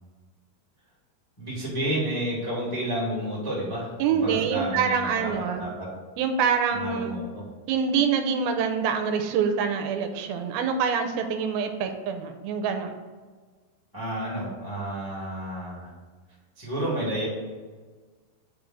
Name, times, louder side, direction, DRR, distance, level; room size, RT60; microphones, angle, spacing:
voice 1, 1.4-5.3 5.6-5.9 6.7-7.4 13.9-15.9 16.6-17.3, right 1 dB, 10° left, -6 dB, 1.0 m, -31 dB
voice 2, 4.0-5.7 6.2-7.1 7.7-12.9, right 6 dB, 80° right, 6 dB, 2.3 m, -25 dB
5.2 x 4.9 x 6.1 m, 1.4 s
omnidirectional pair, 4.7 m